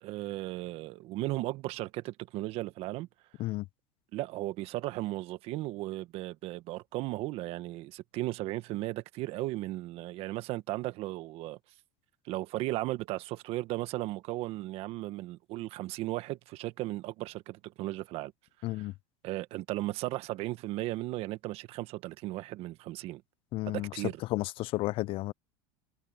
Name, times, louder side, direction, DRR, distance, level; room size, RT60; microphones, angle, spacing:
voice 1, 0.0-3.1 4.1-11.6 12.3-18.3 18.7-18.9 19.2-23.2 23.7-24.2, right 17 dB, 55° right, 1.4 m, -36 dB
voice 2, 18.6-18.9 23.5-23.9 24.3-25.3, left 19 dB, 50° left, 0.4 m, -32 dB
supercardioid pair, 105°, 12 cm